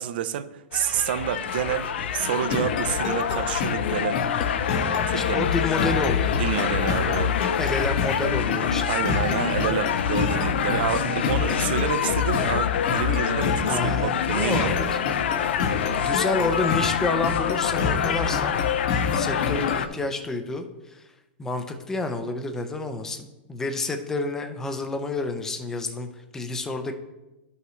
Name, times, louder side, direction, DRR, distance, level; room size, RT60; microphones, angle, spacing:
voice 1, 0.0-4.2 5.1-5.5 6.4-7.3 8.9-14.8, right 10 dB, 60° right, 12 dB, 0.5 m, -29 dB
sound 1, 0.7-19.9, left 8 dB, 80° left, 0.5 m, -25 dB
sound 2, 2.5-19.9, left 4 dB, 45° left, 0.9 m, -31 dB
voice 2, 5.1-6.4 7.6-9.0 11.0-11.3 13.7-15.0 16.0-18.6 19.0-21.1 21.4-26.1 26.3-26.9, left 3 dB, 10° left, 6 dB, 0.5 m, -29 dB
11.5 x 5.6 x 3.1 m, 1.0 s
supercardioid pair, 165°, 6 cm